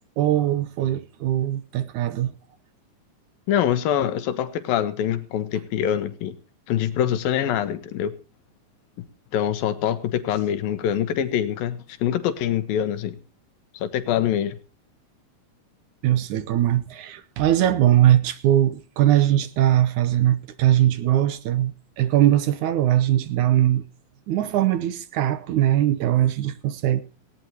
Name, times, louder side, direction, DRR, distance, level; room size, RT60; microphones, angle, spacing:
voice 1, 0.2-2.3 16.0-23.8 24.3-27.0, right 12 dB, 70° right, 2.1 m, -21 dB
voice 2, 3.5-6.3 6.7-8.1 9.3-13.2 13.7-14.6, left 10 dB, 85° left, 3.1 m, -24 dB
18.5 x 17.0 x 2.9 m
omnidirectional pair, 4.0 m